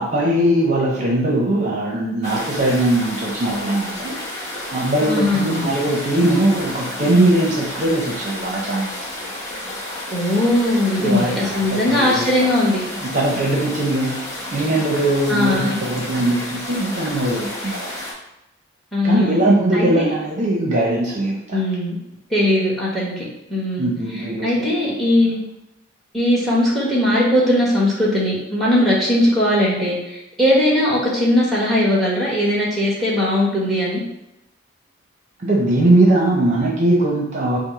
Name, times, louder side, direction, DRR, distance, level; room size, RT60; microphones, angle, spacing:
voice 1, 0.0-4.1 4.7-8.9 11.0-12.3 13.0-14.2 14.5-17.9 19.0-21.6 23.8-24.9 35.4-37.6, right 1 dB, 40° right, -2 dB, 0.7 m, -20 dB
sound 1, 2.2-18.1, left 1 dB, 15° left, 0.9 m, -31 dB
voice 2, 5.0-5.6 10.1-12.8 15.3-15.8 18.9-19.4 19.7-20.1 21.5-21.9 22.3-23.9 24.4-25.4 26.1-34.0, left 1 dB, ahead, -5 dB, 1.2 m, -19 dB
5.1 x 2.0 x 4.4 m, 0.87 s
head